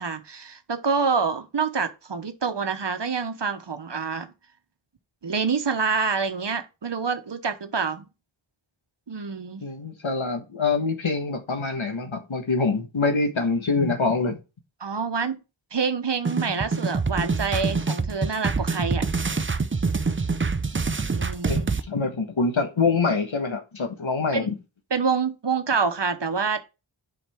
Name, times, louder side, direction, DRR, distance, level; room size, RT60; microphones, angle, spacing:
voice 1, 0.0-4.3 5.2-8.0 9.1-9.6 14.8-15.4 15.7-19.1 21.2-21.7 24.3-24.5 24.9-26.6, right 5 dB, 65° right, 1.0 m, -27 dB
voice 2, 9.6-14.4 21.5-24.5, left 4 dB, 85° left, 1.3 m, -25 dB
sound 1, 16.2-21.8, right 4 dB, 25° right, 0.5 m, -25 dB
7.4 x 5.1 x 3.5 m
wide cardioid pair, 45°, 46 cm